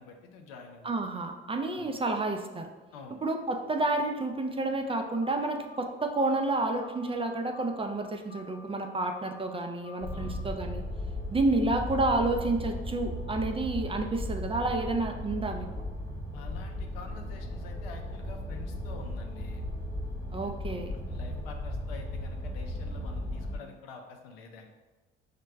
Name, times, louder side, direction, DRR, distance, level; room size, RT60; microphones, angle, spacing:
voice 1, 0.0-1.0 1.8-2.0 2.9-3.2 10.1-10.4 16.3-19.6 20.4-24.7, left 4 dB, 80° left, 4 dB, 0.6 m, -48 dB
voice 2, 0.8-2.7 3.2-10.8 11.3-15.7 20.3-20.9, right 2 dB, 20° right, 4 dB, 0.4 m, -30 dB
sound 1, 5.2-5.7 6.0-6.5 6.7-7.2 7.5-8.0 8.3-8.8 9.1-9.6 9.8-10.3, left 4 dB, 30° left, 0.6 m, -51 dB
sound 2, 10.0-23.6, left 1 dB, 10° left, 1.2 m, -36 dB
5.3 x 2.2 x 3.3 m, 1.2 s
hypercardioid pair, 65°, 29 cm